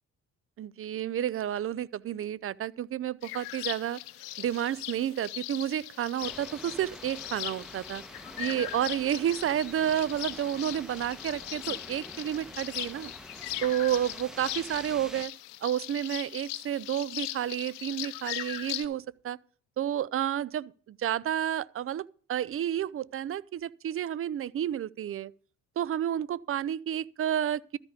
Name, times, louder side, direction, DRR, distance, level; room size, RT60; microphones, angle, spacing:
voice 1, 0.6-4.0 4.4-8.0 8.4-13.1 13.6-15.3 15.6-19.4 19.8-25.3 25.8-27.8, right 10 dB, 30° right, 0.4 m, -31 dB
sound 1, 3.2-18.9, left 17 dB, 80° left, 0.7 m, -40 dB
sound 2, 6.2-15.3, equal, ahead, 1.2 m, -47 dB
13.0 x 5.2 x 8.1 m
hypercardioid pair, 50°, 46 cm